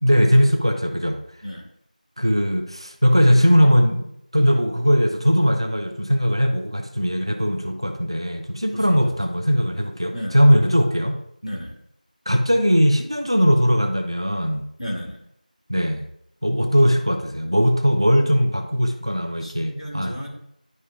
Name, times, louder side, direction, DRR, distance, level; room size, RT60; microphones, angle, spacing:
voice 1, 0.0-1.2 2.2-11.2 12.3-14.7 15.7-16.1 16.4-20.2, equal, 35° right, 4 dB, 0.6 m, -19 dB
voice 2, 8.7-9.1 10.1-10.4 11.4-11.7 14.8-15.2 19.4-20.3, equal, 50° left, -1 dB, 2.1 m, -33 dB
11.0 x 5.1 x 2.3 m, 0.73 s
figure-of-eight pair, 180°, 5 cm